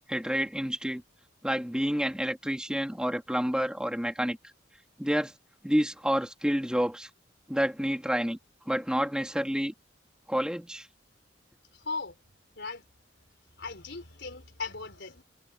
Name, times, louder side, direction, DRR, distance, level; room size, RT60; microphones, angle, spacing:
voice 1, 0.1-1.0 1.4-4.4 5.0-5.3 5.6-7.1 7.5-8.4 8.7-9.7 10.3-10.9, equal, 5° right, 2.6 m, -29 dB
voice 2, 11.7-12.2 12.5-12.9 13.6-15.2, left 4 dB, 65° left, 4.4 m, -38 dB
head